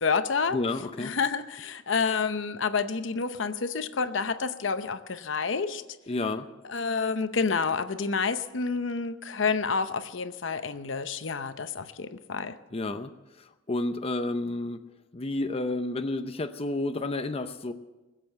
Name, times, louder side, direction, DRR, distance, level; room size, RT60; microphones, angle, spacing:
voice 1, 0.0-0.6 1.0-5.8 6.7-12.5, left 5 dB, 70° left, 10 dB, 0.8 m, -29 dB
voice 2, 0.5-1.1 6.1-6.5 12.7-13.1 13.4-14.8 15.1-17.7, left 2 dB, 30° left, 8 dB, 0.6 m, -30 dB
20.5 x 7.7 x 7.8 m, 1.1 s
head